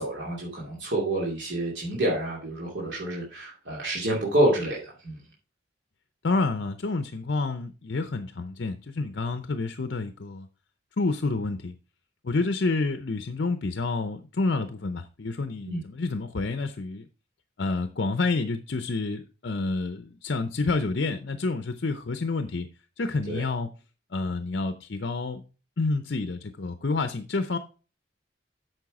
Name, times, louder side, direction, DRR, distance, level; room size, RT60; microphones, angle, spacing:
voice 1, 0.0-5.2 15.7-15.8 23.3-23.4, right 1 dB, 65° right, 2.6 m, -28 dB
voice 2, 6.2-10.5 11.0-11.7 12.2-17.1 17.6-22.7 23.0-23.7 24.1-25.4 25.8-27.6, left 3 dB, 60° left, 0.6 m, -29 dB
8.9 x 6.5 x 4.8 m
head